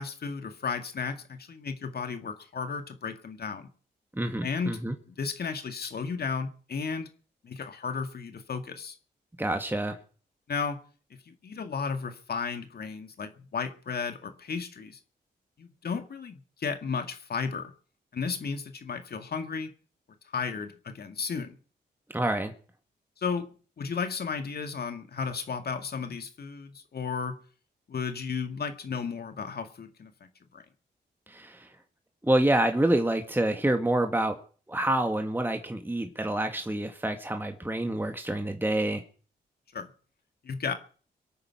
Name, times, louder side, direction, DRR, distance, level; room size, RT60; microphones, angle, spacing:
voice 1, 0.0-3.7 4.4-4.8 5.1-7.1 7.4-9.0 10.5-10.8 11.3-15.0 15.6-17.7 18.1-19.7 20.3-21.5 23.2-23.5 23.8-27.4 27.9-30.6 39.7-39.9 40.4-40.7, left 5 dB, 60° left, 2.0 m, -34 dB
voice 2, 4.1-5.0 9.4-10.0 22.1-22.5 31.3-31.7 32.2-34.4 34.7-39.0, right 1 dB, 10° right, 2.1 m, -27 dB
23.5 x 8.8 x 5.9 m
cardioid pair, 55°, 18 cm